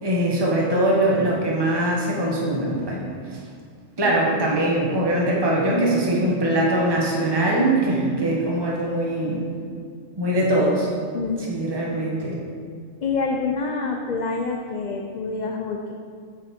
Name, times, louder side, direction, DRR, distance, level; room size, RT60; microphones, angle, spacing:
voice 1, 0.0-3.0 4.0-9.4 10.2-10.9 11.5-12.4, right 1 dB, 20° right, -3 dB, 1.2 m, -22 dB
voice 2, 11.1-11.6 13.0-15.9, left 4 dB, 50° left, 1 dB, 0.5 m, -27 dB
8.7 x 5.3 x 4.3 m, 2.1 s
omnidirectional pair, 1.3 m